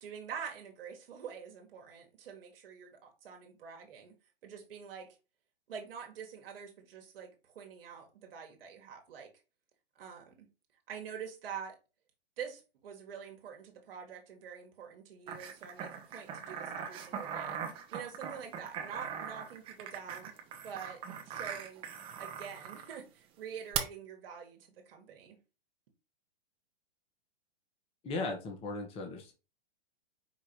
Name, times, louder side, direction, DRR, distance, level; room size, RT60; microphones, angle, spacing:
voice 1, 0.0-4.1 4.4-5.1 5.7-9.3 9.9-10.5 10.9-11.8 12.4-17.6 17.9-20.3 20.6-21.9 22.2-25.4, right 7 dB, 65° right, 1.3 m, -46 dB
sound 1, 15.3-22.9 23.7-23.8, right 8 dB, 15° right, 0.5 m, -40 dB
voice 2, 28.0-29.3, left 3 dB, 20° left, 0.8 m, -37 dB
4.7 x 2.4 x 4.4 m
hypercardioid pair, 130°, 31 cm